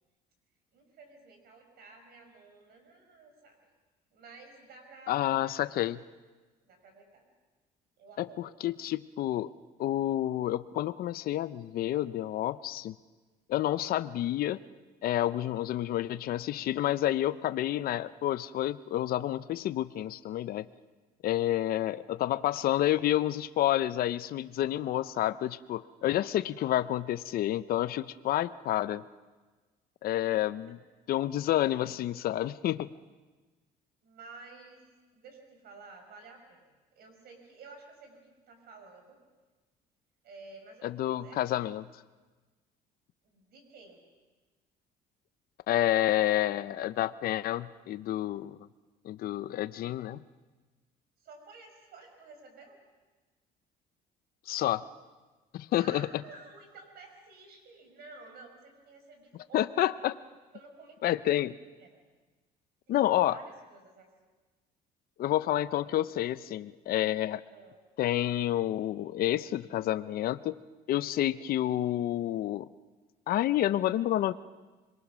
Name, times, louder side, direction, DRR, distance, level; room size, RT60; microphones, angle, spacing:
voice 1, 0.7-3.6 4.1-5.9 6.6-7.2 8.0-8.5 30.1-30.3 34.0-34.8 35.1-36.6 37.0-39.2 40.2-41.4 43.2-44.0 51.2-52.8 55.8-59.7 60.5-61.1 61.8-62.0 62.9-63.0 63.2-63.4 63.7-64.1 67.5-67.8, right 3 dB, 70° right, 4 dB, 5.8 m, -52 dB
voice 2, 5.1-6.0 8.2-9.5 9.8-12.9 13.5-14.6 15.0-20.7 21.2-29.0 30.0-30.8 31.1-32.9 40.8-41.8 45.7-48.7 49.0-50.2 54.5-54.8 55.5-56.1 59.5-60.2 61.0-61.5 62.9-63.4 65.2-67.4 68.0-70.6 70.9-72.7 73.3-74.3, left 13 dB, 60° left, 14 dB, 0.6 m, -29 dB
26.0 x 22.0 x 6.2 m, 1.3 s
cardioid pair, 110°, 17 cm